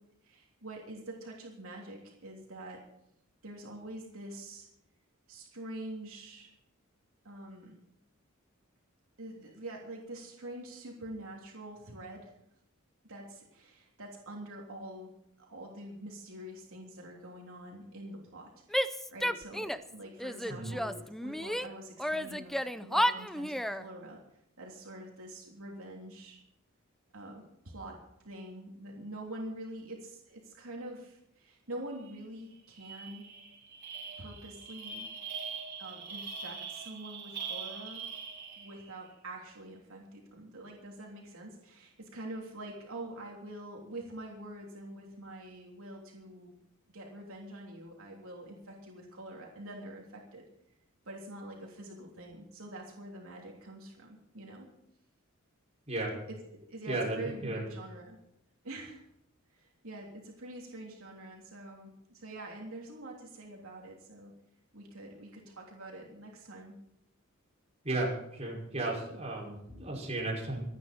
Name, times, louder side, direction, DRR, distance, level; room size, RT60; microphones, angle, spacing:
voice 1, 0.2-2.8 3.4-4.7 5.3-6.5 7.2-7.8 9.2-12.4 13.0-15.1 15.4-24.2 24.6-26.4 27.1-33.3 34.2-35.1 35.8-38.1 38.6-46.5 46.9-50.4 51.0-54.7 56.3-58.2 58.6-59.1 59.5-64.3 64.7-66.8, right 1 dB, 75° right, -1 dB, 3.2 m, -45 dB
Female speech woman speaking / Yell, 18.7-19.9 20.2-21.7 22.0-23.8, equal, ahead, 0.5 m, -32 dB
sound 1, 32.1-32.2 32.5-38.9, right 5 dB, 55° right, 4.9 m, -42 dB
voice 2, 55.9-56.2 56.9-57.6 67.8-70.6, right 2 dB, 30° right, -2 dB, 5.5 m, -34 dB
27.0 x 9.7 x 4.4 m, 0.76 s
head